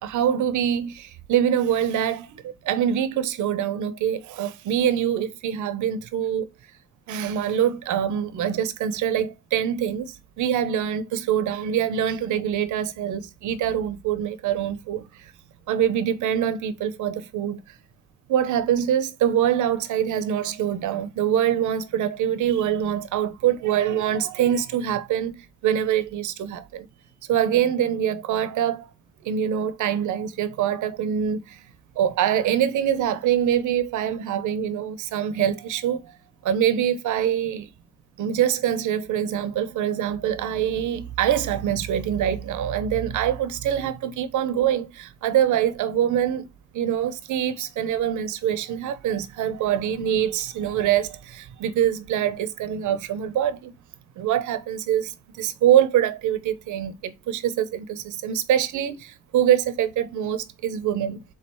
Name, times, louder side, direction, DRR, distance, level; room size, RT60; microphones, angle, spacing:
voice 1, 0.0-6.5 7.1-15.3 15.7-17.8 18.3-26.9 27.3-28.9 29.2-31.6 32.0-36.1 36.4-37.7 38.2-46.5 46.7-53.7 54.2-61.2, right 10 dB, 75° right, 0.7 m, -24 dB
3.9 x 3.1 x 4.4 m
cardioid pair, 90°, 30 cm